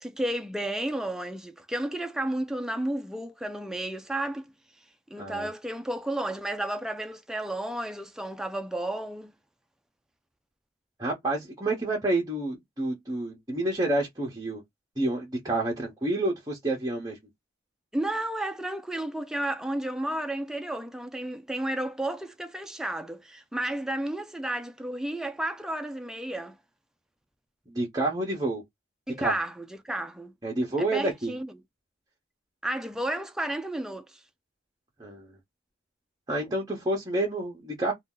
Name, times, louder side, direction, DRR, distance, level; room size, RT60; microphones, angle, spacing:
voice 1, 0.0-4.5 5.1-9.3 17.9-26.6 29.1-30.3 30.8-31.5 32.6-34.2, right 1 dB, 5° right, 0.3 m, -32 dB
voice 2, 5.2-5.5 11.0-14.6 15.0-17.2 27.7-28.6 29.2-29.3 30.4-31.3 35.0-35.3 36.3-37.9, right 2 dB, 20° right, 0.8 m, -29 dB
2.6 x 2.3 x 3.6 m
head